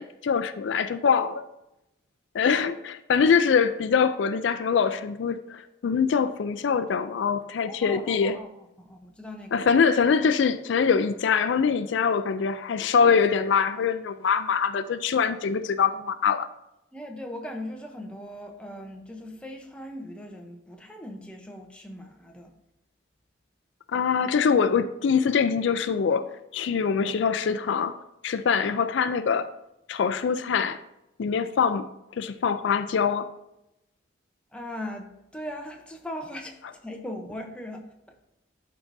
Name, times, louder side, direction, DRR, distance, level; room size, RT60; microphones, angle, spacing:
voice 1, 0.0-1.4 2.3-8.3 9.5-16.5 23.9-26.3 26.5-27.9 28.2-29.5 29.9-30.8 31.2-31.9 32.2-33.3, left 6 dB, 70° left, 0.4 m, -23 dB
voice 2, 7.6-9.7 16.9-22.5 34.5-37.9, left 1 dB, 5° left, 0.7 m, -39 dB
11.5 x 4.7 x 2.6 m
head